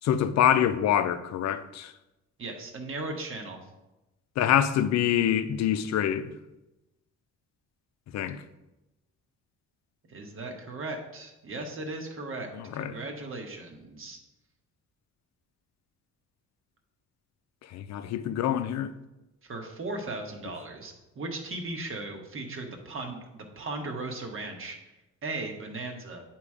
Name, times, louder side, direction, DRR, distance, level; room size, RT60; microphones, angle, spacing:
voice 1, 0.0-1.9 4.4-6.3 8.1-8.4 12.7-12.9 17.7-18.9, left 10 dB, 65° left, 0.5 m, -25 dB
voice 2, 2.4-3.6 10.1-14.2 19.4-24.8 25.2-26.2, right 2 dB, 45° right, 1.3 m, -37 dB
8.3 x 3.0 x 4.8 m
cardioid pair, 90°, 30 cm